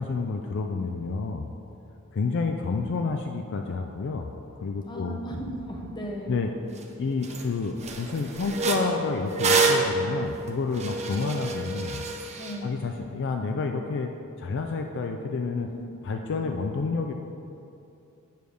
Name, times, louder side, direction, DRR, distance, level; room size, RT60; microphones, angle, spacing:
voice 1, 0.0-1.5 2.1-4.3 4.6-5.2 6.3-6.5 7.0-12.0 12.6-14.1 14.4-15.7 16.0-17.1, left 4 dB, 60° left, 4 dB, 0.4 m, -29 dB
voice 2, 4.9-6.5 10.8-10.9 12.4-12.8 15.6-15.7 16.1-16.2, equal, 20° left, -1 dB, 0.9 m, -36 dB
sound 1, 6.8-6.9 7.2-7.5 7.8-12.6, right 3 dB, 30° right, 0.6 m, -27 dB
9.1 x 3.4 x 6.4 m, 2.7 s
head